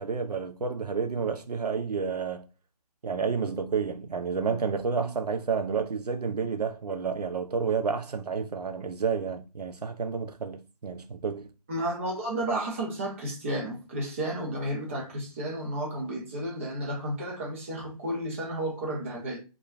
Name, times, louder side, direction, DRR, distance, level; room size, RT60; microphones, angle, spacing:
voice 1, 0.0-2.5 3.0-11.5, right 5 dB, 80° right, 0.5 m, -30 dB
voice 2, 11.7-19.4, right 1 dB, 20° right, 0.6 m, -32 dB
2.9 x 2.2 x 2.4 m
figure-of-eight pair, 155°, 20 cm